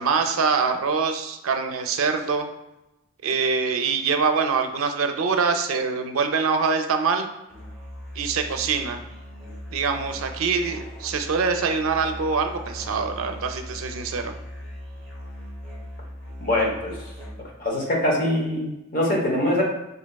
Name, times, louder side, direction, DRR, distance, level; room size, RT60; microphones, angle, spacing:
voice 1, 0.0-2.5 3.2-7.3 8.2-9.0 9.7-14.3, right 5 dB, 75° right, 6 dB, 0.4 m, -24 dB
Musical instrument, 7.5-17.6, left 1 dB, 5° left, 1.2 m, -39 dB
voice 2, 16.4-16.9 17.6-19.6, left 1 dB, 40° left, -2 dB, 0.9 m, -23 dB
5.1 x 2.7 x 2.2 m, 0.94 s
head